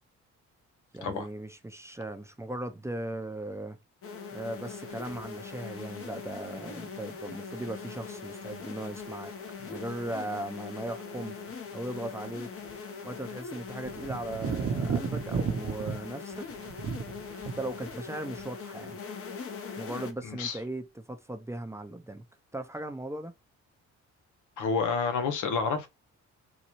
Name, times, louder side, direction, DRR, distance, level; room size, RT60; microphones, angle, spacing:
voice 1, 0.9-3.8 4.3-9.3 9.6-11.3 11.7-12.5 13.0-16.5 17.6-19.0 19.8-22.2 22.5-23.3, right 1 dB, 10° right, 0.5 m, -38 dB
sound 1, 4.0-20.1, left 5 dB, 50° left, 0.8 m, -41 dB
sound 2, 5.1-5.2 8.0-8.5 9.0-9.1 11.5-11.6 12.7-12.8 13.2-13.3 13.7-16.0 16.3-18.0 18.3-18.5, right 6 dB, 50° right, 0.7 m, -34 dB
voice 2, 20.2-20.6 24.6-25.9, left 5 dB, 80° left, 0.9 m, -29 dB
4.0 x 2.3 x 3.0 m
cardioid pair, 90°, 30 cm